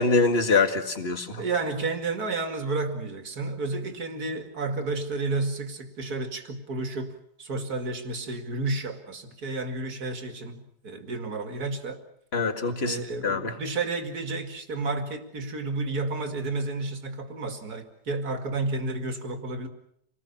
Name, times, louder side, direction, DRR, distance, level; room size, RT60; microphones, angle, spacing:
voice 1, 0.0-1.4 12.3-13.5, left 3 dB, 35° left, 7 dB, 2.2 m, -24 dB
voice 2, 1.4-7.1 7.4-12.0 12.8-19.7, right 3 dB, 50° right, 6 dB, 2.8 m, -31 dB
27.5 x 19.5 x 7.3 m, 0.72 s
omnidirectional pair, 2.1 m